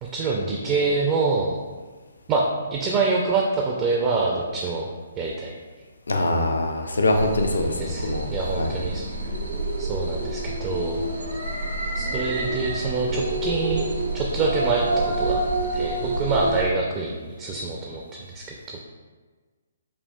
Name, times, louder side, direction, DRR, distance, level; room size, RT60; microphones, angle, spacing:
voice 1, 0.0-1.6 2.3-4.9 5.2-5.5 7.8-9.1 9.8-11.0 12.0-13.9 14.1-15.4 15.7-18.8, right 3 dB, 25° right, 0 dB, 0.4 m, -26 dB
voice 2, 6.1-8.3 8.6-8.8, left 2 dB, 75° left, 3 dB, 0.4 m, -23 dB
sound 1, 7.1-16.6, right 2 dB, 85° right, 0.7 m, -28 dB
5.4 x 2.3 x 2.2 m, 1.4 s
figure-of-eight pair, 130°, 0 cm